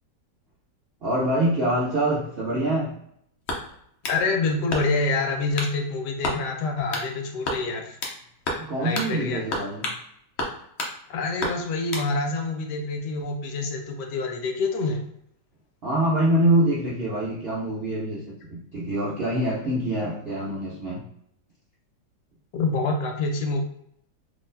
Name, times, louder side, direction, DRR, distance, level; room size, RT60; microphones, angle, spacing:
voice 1, 1.0-2.9 8.6-9.9 15.8-21.0, right 1 dB, 60° right, -6 dB, 0.6 m, -25 dB
sound 1, 3.4-4.2 4.7-5.1 5.6-5.8 6.2-6.4 6.9-7.1 7.4-8.2 8.5-8.7 8.9-9.1 9.5-10.0 10.4-10.9 11.4-12.1, left 2 dB, 60° left, 0.7 m, -30 dB
voice 2, 4.1-8.0 8.8-9.4 11.1-15.0 22.5-23.6, left 3 dB, 75° left, 3 dB, 1.2 m, -26 dB
3.9 x 3.0 x 2.6 m, 0.70 s
omnidirectional pair, 1.9 m